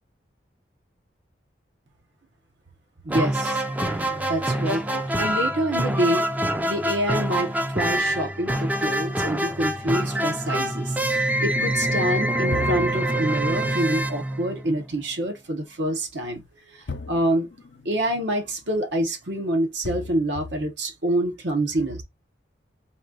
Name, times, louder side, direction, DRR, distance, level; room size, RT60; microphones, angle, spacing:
voice 1, 3.0-3.6 4.3-6.2 6.7-7.5 7.7-11.0 11.4-17.5 17.8-22.0, right 1 dB, 75° right, 1.0 m, -26 dB
sound 1, 3.1-15.0, right 1 dB, 10° right, 0.4 m, -25 dB
sound 2, 10.8-11.0 12.5-15.0 16.9-19.2 19.8-20.7, left 4 dB, 90° left, 0.6 m, -39 dB
4.2 x 2.4 x 3.8 m
head